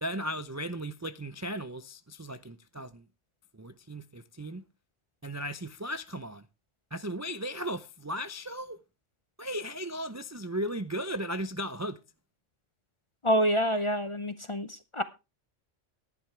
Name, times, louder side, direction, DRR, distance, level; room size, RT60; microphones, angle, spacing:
voice 1, 0.0-3.1 3.5-4.6 5.2-6.5 6.9-8.8 9.4-12.0, equal, 25° right, 0.4 m, -36 dB
voice 2, 13.2-15.0, equal, 30° left, 0.6 m, -27 dB
14.5 x 11.0 x 3.3 m
omnidirectional pair, 1.3 m